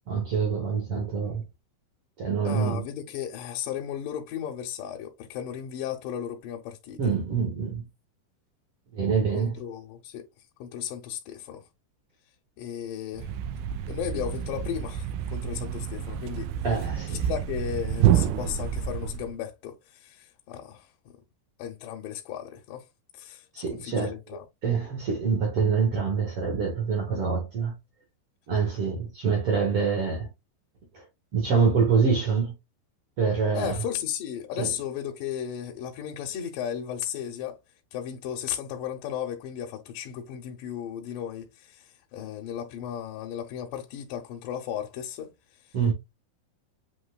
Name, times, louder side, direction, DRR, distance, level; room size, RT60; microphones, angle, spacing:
voice 1, 0.1-1.4 2.2-2.8 7.0-7.8 8.9-9.6 16.6-17.2 23.5-24.1 24.6-27.7 28.5-30.3 30.9-31.0 31.3-32.5 33.2-33.8 34.6-34.7 45.7-45.9, right 5 dB, 60° right, 1.5 m, -25 dB
voice 2, 2.4-7.0 9.3-10.3 10.6-11.6 12.6-13.3 13.9-16.5 17.1-21.2 21.6-22.8 23.1-24.5 33.5-37.6 37.9-45.3 45.6-45.8, left 9 dB, 75° left, 2.2 m, -35 dB
Thump thud, 13.1-19.4, right 10 dB, 80° right, 2.3 m, -28 dB
7.8 x 3.0 x 2.2 m
omnidirectional pair, 4.3 m